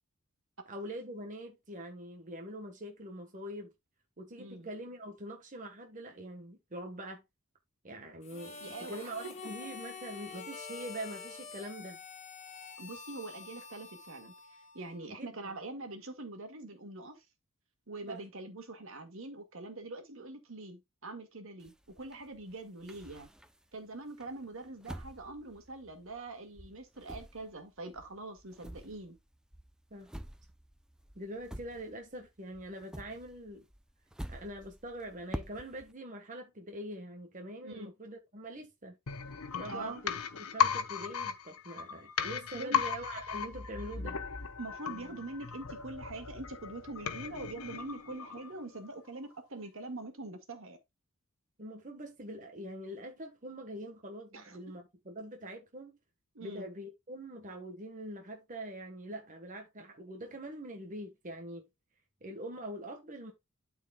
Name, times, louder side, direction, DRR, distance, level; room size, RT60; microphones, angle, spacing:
voice 1, 0.7-3.7 4.2-7.2 7.8-12.0 15.1-15.5 18.1-18.2 29.9-30.1 31.1-33.7 34.3-39.0 39.6-44.2 51.6-56.0 56.4-61.7 62.2-63.3, right 1 dB, 35° right, 1.3 m, -44 dB
voice 2, 4.4-4.7 8.6-9.1 12.8-17.2 17.9-23.3 23.7-29.2 37.6-37.9 39.7-40.0 42.5-42.8 44.6-50.8 54.3-54.6 56.3-56.7, right 2 dB, 65° right, 1.9 m, -44 dB
Harmonica, 8.2-15.1, left 5 dB, 30° left, 1.9 m, -47 dB
sound 1, 21.6-23.7 24.2-26.3 26.6-32.3 32.5-35.9, equal, 5° right, 0.5 m, -47 dB
sound 2, 39.1-48.8 49.1-49.2, left 7 dB, 85° left, 1.0 m, -36 dB
12.5 x 4.6 x 2.3 m
head